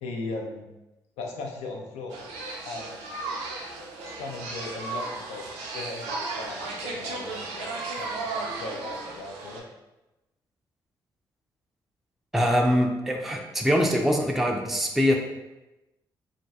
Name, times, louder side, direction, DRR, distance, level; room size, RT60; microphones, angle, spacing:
voice 1, 0.0-0.7 1.2-2.3 2.6-3.0 4.0-9.6, left 3 dB, 75° left, 1 dB, 0.4 m, -38 dB
sound 1, 2.1-9.6, right 3 dB, 75° right, 0.4 m, -35 dB
voice 2, 12.3-15.2, equal, ahead, 1 dB, 0.4 m, -23 dB
2.5 x 2.2 x 2.3 m, 1.0 s
hypercardioid pair, 40°, 11 cm